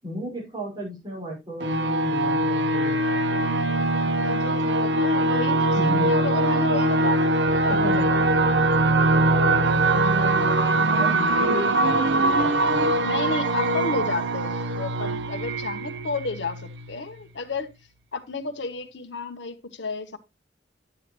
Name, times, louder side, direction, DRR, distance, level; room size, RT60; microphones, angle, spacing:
voice 1, 0.0-3.3 4.0-4.2 5.7-6.1 7.7-8.0 9.1-9.9 10.8-12.9, equal, 25° right, 5.5 m, -34 dB
sound 1, 1.6-16.9, right 2 dB, 70° right, 0.7 m, -22 dB
voice 2, 4.2-8.3 13.0-17.7 18.1-20.2, left 3 dB, 80° left, 1.1 m, -32 dB
10.0 x 7.7 x 3.0 m
head